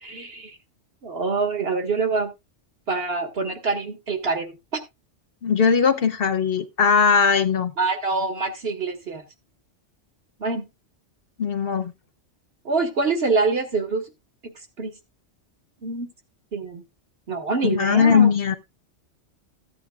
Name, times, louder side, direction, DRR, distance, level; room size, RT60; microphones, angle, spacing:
voice 1, 0.0-0.6 1.0-2.3 2.9-4.8 7.8-9.2 10.4-10.6 12.6-14.0 14.4-14.5 14.8-14.9 15.8-16.1 16.5-16.8 17.3-18.3, right 4 dB, 55° right, 1.7 m, -25 dB
voice 2, 5.4-7.7 11.4-11.9 17.6-18.6, left 6 dB, 60° left, 0.8 m, -19 dB
14.0 x 8.7 x 2.3 m
omnidirectional pair, 1.2 m